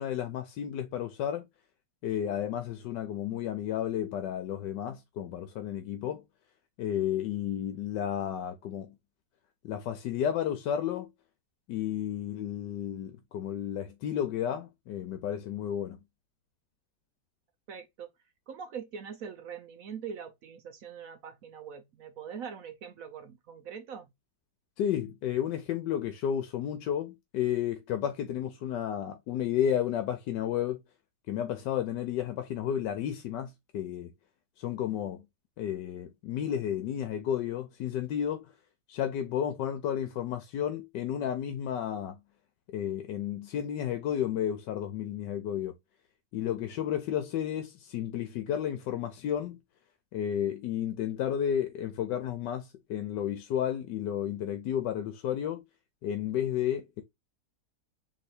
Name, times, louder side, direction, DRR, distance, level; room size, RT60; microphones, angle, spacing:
voice 1, 0.0-1.4 2.0-6.2 6.8-8.9 9.6-11.1 11.7-16.0 24.8-30.8 31.3-34.1 34.6-35.2 35.6-38.5 38.9-42.2 42.7-45.7 46.3-49.6 50.1-55.6 56.0-57.0, left 10 dB, 85° left, 1.3 m, -32 dB
voice 2, 17.7-18.1 18.5-24.1, right 7 dB, 65° right, 0.9 m, -42 dB
3.3 x 3.3 x 4.2 m
omnidirectional pair, 1.9 m